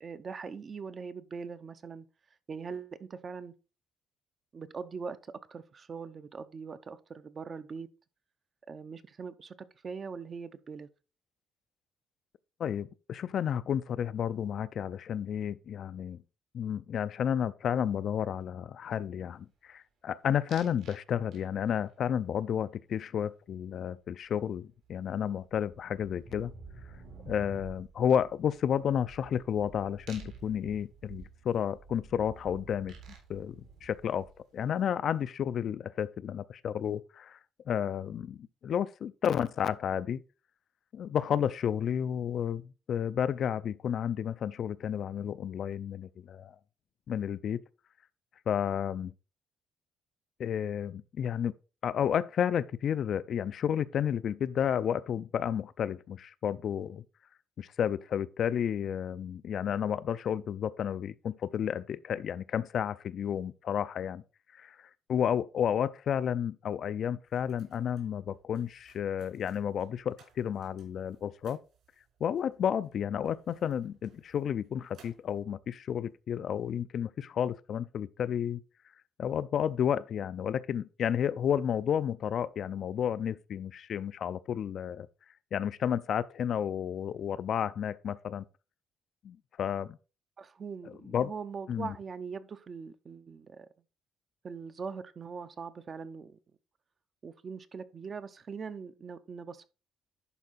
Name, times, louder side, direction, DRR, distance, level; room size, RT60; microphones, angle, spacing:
voice 1, 0.0-2.1 2.5-3.5 4.5-7.9 8.7-10.9 90.4-93.7 94.4-96.4 97.2-99.7, right 5 dB, 30° right, 0.6 m, -41 dB
voice 2, 12.6-16.2 16.5-26.5 27.3-32.9 33.3-34.3 34.5-37.4 37.7-40.2 40.9-46.6 47.1-47.6 48.5-49.1 50.4-51.5 51.8-57.0 57.6-64.2 64.5-71.6 72.2-78.6 79.2-85.1 85.5-88.4 89.2-90.0 90.8-91.3 91.7-91.9, left 8 dB, 45° left, 0.4 m, -31 dB
sound 1, 20.5-21.0 21.3-21.8 24.2-24.3 24.6-34.6, right 4 dB, 75° right, 3.7 m, -50 dB
sound 2, 67.3-76.2, right 5 dB, 60° right, 3.9 m, -63 dB
11.0 x 4.7 x 4.1 m
cardioid pair, 160°, 0 cm